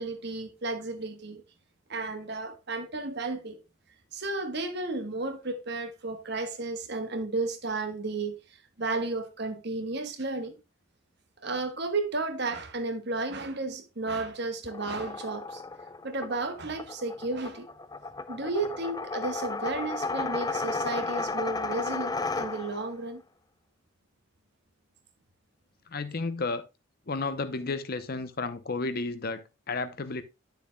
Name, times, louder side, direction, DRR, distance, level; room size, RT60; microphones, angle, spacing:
voice 1, 0.0-1.4 1.9-3.6 4.1-8.4 8.8-10.5 11.4-15.6 16.0-17.7 18.3-23.2, right 3 dB, 55° right, 1.2 m, -33 dB
sound 1, 14.6-22.9, left 3 dB, 20° left, 0.4 m, -34 dB
voice 2, 25.9-26.6 27.1-30.2, left 3 dB, 45° left, 0.7 m, -32 dB
9.7 x 6.9 x 2.2 m
head